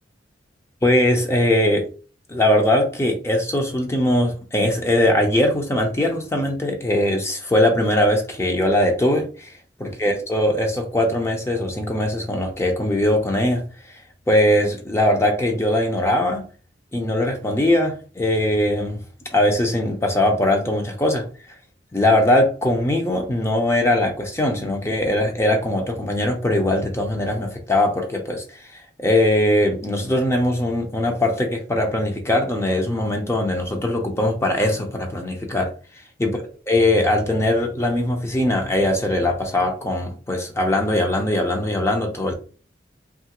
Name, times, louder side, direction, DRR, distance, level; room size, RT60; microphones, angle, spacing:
voice 1, 0.8-1.8 2.3-9.5 9.8-13.6 14.3-16.4 16.9-19.0 19.3-21.2 21.9-28.6 29.0-35.7 36.2-36.4 36.7-42.3, left 1 dB, 15° left, 0.5 m, -20 dB
2.9 x 2.4 x 2.9 m
head